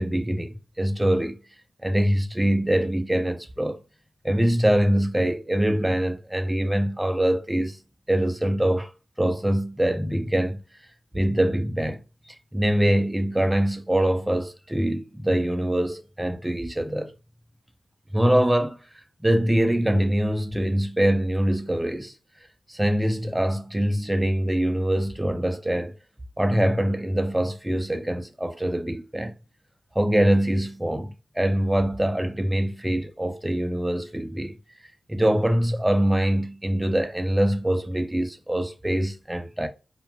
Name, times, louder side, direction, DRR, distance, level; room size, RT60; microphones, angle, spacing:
voice 1, 0.0-1.4 1.8-3.8 4.2-7.8 8.1-8.9 9.2-10.6 11.1-12.0 12.3-17.1 18.1-18.8 19.2-22.1 22.7-26.0 26.4-29.3 29.9-34.6 35.1-39.7, right 1 dB, 10° right, 0.5 m, -24 dB
2.4 x 2.2 x 2.8 m
cardioid pair, 45°, 0 cm